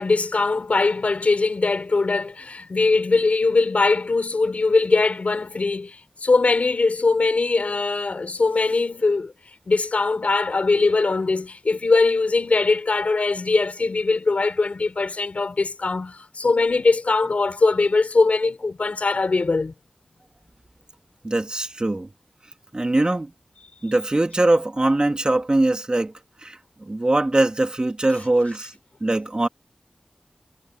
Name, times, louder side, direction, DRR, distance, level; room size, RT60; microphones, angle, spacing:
voice 1, 0.0-9.3 9.7-19.7, left 3 dB, 75° left, 4.6 m, -21 dB
voice 2, 21.2-22.1 22.7-23.3 23.8-26.1 26.4-26.6 26.9-28.7 29.0-29.5, right 2 dB, 35° right, 3.0 m, -21 dB
wide cardioid pair, 65°, 2 cm